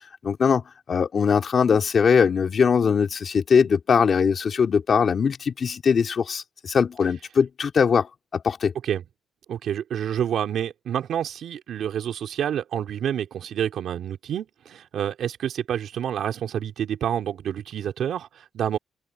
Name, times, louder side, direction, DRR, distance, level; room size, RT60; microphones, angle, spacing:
voice 1, 0.2-0.6 0.9-8.7, left 6 dB, 45° left, 2.6 m, -21 dB
voice 2, 9.5-18.8, right 9 dB, 65° right, 3.7 m, -28 dB
cardioid pair, 140°, 0 cm